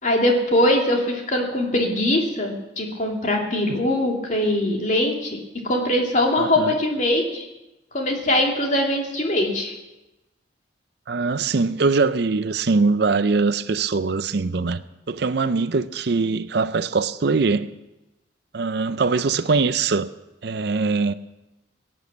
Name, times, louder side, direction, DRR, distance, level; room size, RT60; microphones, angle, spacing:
voice 1, 0.0-5.3 5.6-7.5 7.9-9.7, left 1 dB, 40° left, 2.6 m, -22 dB
voice 2, 6.4-6.7 11.1-17.7 18.5-20.1 20.4-21.1, right 4 dB, 60° right, 0.5 m, -22 dB
17.0 x 8.8 x 7.1 m
head